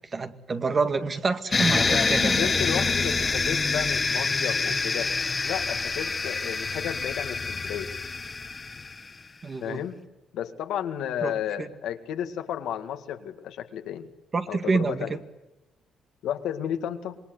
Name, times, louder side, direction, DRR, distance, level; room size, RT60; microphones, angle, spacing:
voice 1, 0.1-2.5 9.4-9.9 11.2-11.3 11.6-11.7 14.3-15.2, right 4 dB, 35° right, 8 dB, 2.0 m, -27 dB
sound 1, 1.5-9.1, left 4 dB, 30° left, 1.5 m, -26 dB
voice 2, 1.8-5.1 5.4-7.9 9.6-10.0 10.3-14.1 14.5-15.2 16.2-17.2, left 10 dB, 85° left, 6 dB, 2.1 m, -32 dB
26.5 x 21.5 x 8.1 m, 1.0 s
cardioid pair, 90°, 0 cm